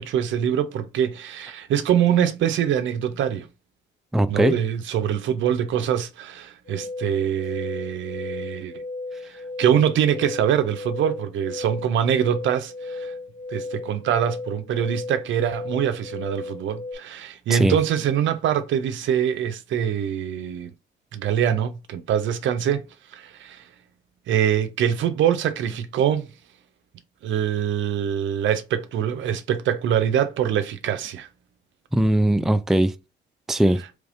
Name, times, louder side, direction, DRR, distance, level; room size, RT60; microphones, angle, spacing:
voice 1, 0.0-3.5 4.3-8.8 9.6-13.1 13.5-20.7 21.1-22.9 23.1-23.6 24.3-26.3 27.2-31.3, right 9 dB, 75° right, 0.5 m, -24 dB
voice 2, 4.1-4.6 17.5-17.8 31.9-32.9 33.5-33.8, right 1 dB, ahead, 0.3 m, -19 dB
sound 1, 6.6-16.9, left 3 dB, 55° left, 1.6 m, -35 dB
3.4 x 3.2 x 2.5 m
cardioid pair, 90°, 20 cm